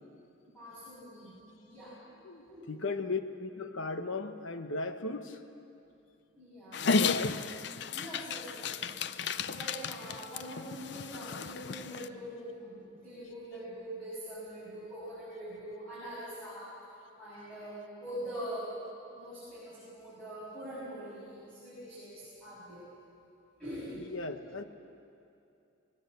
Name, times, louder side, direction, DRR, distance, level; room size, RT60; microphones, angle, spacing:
voice 1, 0.5-2.1 2.5-2.7 6.4-6.9 7.9-9.1 9.5-16.8 17.2-18.7 19.2-22.9 23.6-24.3, equal, 5° left, -11 dB, 6.7 m, -43 dB
voice 2, 2.2-5.4 6.8-7.5 23.9-24.6, left 3 dB, 80° left, 8 dB, 1.0 m, -37 dB
Dog, 6.7-12.1, left 5 dB, 55° left, 0.5 m, -33 dB
21.0 x 19.0 x 8.0 m, 2.7 s
head